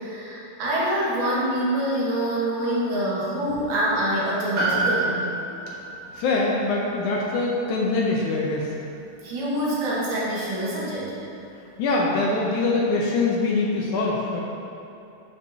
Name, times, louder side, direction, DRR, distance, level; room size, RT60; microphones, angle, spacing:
voice 1, 0.0-5.3 9.2-11.1, right 1 dB, 75° right, -7 dB, 3.2 m, -25 dB
Piano, 4.6-9.2 9.4-9.5, right 2 dB, 60° right, 2.7 m, -30 dB
voice 2, 6.2-8.7 11.8-14.4, left 3 dB, 75° left, -2 dB, 2.0 m, -23 dB
11.0 x 5.9 x 2.8 m, 2.8 s
omnidirectional pair, 3.9 m